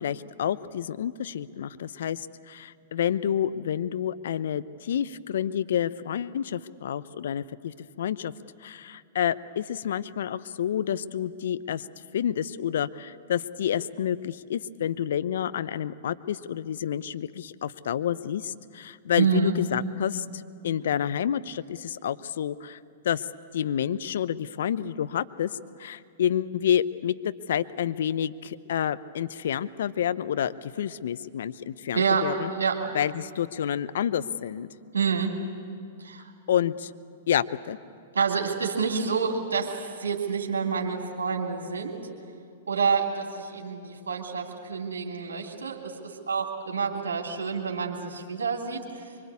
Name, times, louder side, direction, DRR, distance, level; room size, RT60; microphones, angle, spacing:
voice 1, 0.0-8.3 8.6-11.9 12.1-22.8 23.0-23.3 23.5-32.5 32.9-34.7 36.5-36.9 37.3-37.8, left 9 dB, 65° left, 14 dB, 0.8 m, -29 dB
voice 2, 19.2-19.5 31.9-32.8 34.9-35.4 36.0-36.3 38.1-42.0 42.7-49.0, right 5 dB, 75° right, 0 dB, 2.9 m, -28 dB
24.5 x 24.0 x 8.5 m, 2.4 s
hypercardioid pair, 110°, 0 cm